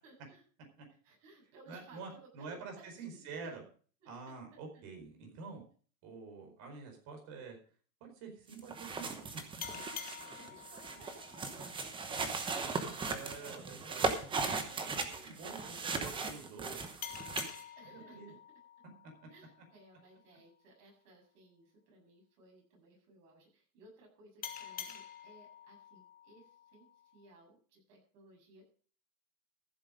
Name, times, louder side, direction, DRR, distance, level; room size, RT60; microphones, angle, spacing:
voice 1, 0.0-0.4 1.0-3.5 4.0-4.3 9.8-13.1 13.3-13.8 14.1-16.5 17.7-18.4 19.3-28.6, right 2 dB, 55° right, 0 dB, 7.8 m, -60 dB
voice 2, 1.7-3.6 4.0-5.6 6.0-7.6 8.0-9.4 13.1-14.1 15.2-16.9 17.9-18.3, right 4 dB, 35° right, 3 dB, 4.8 m, -47 dB
sound 1, 8.5-17.6, right 4 dB, 10° right, 1.0 m, -38 dB
sound 2, 9.6-12.8 17.0-20.2 24.4-27.4, left 9 dB, 20° left, 1.3 m, -49 dB
14.5 x 7.8 x 5.2 m, 0.42 s
supercardioid pair, 150°, 46 cm